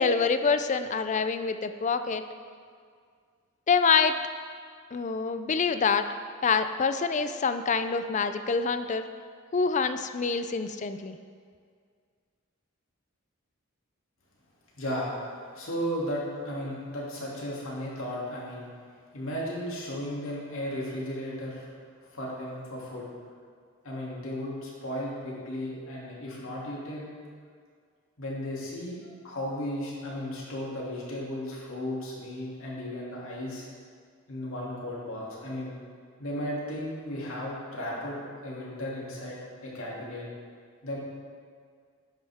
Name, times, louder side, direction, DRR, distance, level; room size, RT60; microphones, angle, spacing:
voice 1, 0.0-2.2 3.7-4.2 4.9-6.1 6.4-9.1 9.5-11.2, left 5 dB, 35° left, 10 dB, 0.4 m, -26 dB
voice 2, 14.8-15.1 15.5-18.7 19.1-21.7 22.1-23.1 23.8-27.1 28.2-33.7 34.3-35.8 36.2-40.3 40.8-41.0, equal, 70° left, -5 dB, 2.7 m, -35 dB
11.0 x 8.8 x 3.6 m, 2.1 s
head